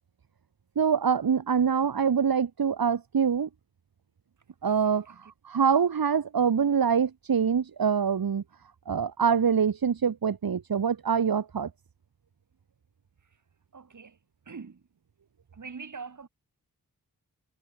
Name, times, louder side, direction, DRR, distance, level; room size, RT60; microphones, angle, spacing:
voice 1, 0.7-3.5 4.6-8.4 8.9-11.7, right 7 dB, 80° right, 3.2 m, -25 dB
voice 2, 13.7-14.1 14.5-14.8 15.6-16.3, right 5 dB, 55° right, 5.2 m, -42 dB
wide cardioid pair, 115°, 35 cm